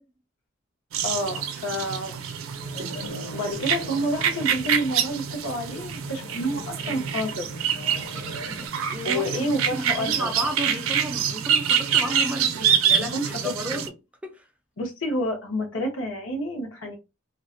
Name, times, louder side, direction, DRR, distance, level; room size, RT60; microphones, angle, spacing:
sound 1, 0.9-13.9, right 8 dB, 80° right, 0.4 m, -26 dB
voice 1, 1.0-2.2 3.3-7.5 9.0-10.3 12.6-13.8 14.8-17.0, equal, 85° left, 0.9 m, -29 dB
sound 2, 2.6-8.7, left 2 dB, 45° left, 0.6 m, -41 dB
voice 2, 8.5-13.9 14.2-14.5, right 1 dB, 5° right, 0.3 m, -33 dB
2.4 x 2.0 x 2.5 m
head